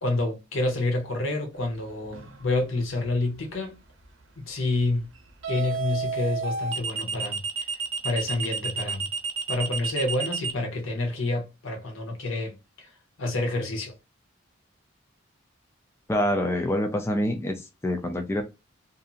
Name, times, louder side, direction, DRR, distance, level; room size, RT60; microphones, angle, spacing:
voice 1, 0.0-3.8 4.4-5.1 5.5-7.7 8.0-9.1 9.5-12.9 13.2-13.9, left 2 dB, 85° left, 0.8 m, -28 dB
sound 1, 2.1-2.5 5.4-10.5, right 5 dB, 75° right, 0.7 m, -30 dB
voice 2, 16.1-18.4, left 1 dB, 15° left, 0.3 m, -26 dB
2.6 x 2.5 x 2.4 m
head